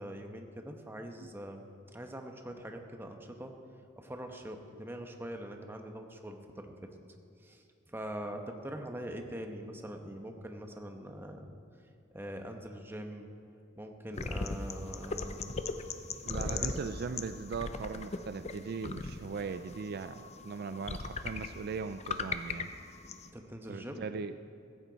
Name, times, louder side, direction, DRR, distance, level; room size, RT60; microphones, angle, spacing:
voice 1, 0.0-1.6 1.9-3.6 4.0-6.7 7.4-11.6 12.1-13.3 13.8-15.6 16.3-16.8 23.3-24.1, equal, 10° right, 4 dB, 1.0 m, -43 dB
sound 1, 14.1-23.3, left 4 dB, 35° left, 0.6 m, -39 dB
voice 2, 16.2-22.7 23.7-24.4, right 5 dB, 55° right, 10 dB, 0.4 m, -39 dB
15.0 x 14.5 x 4.0 m, 2.6 s
head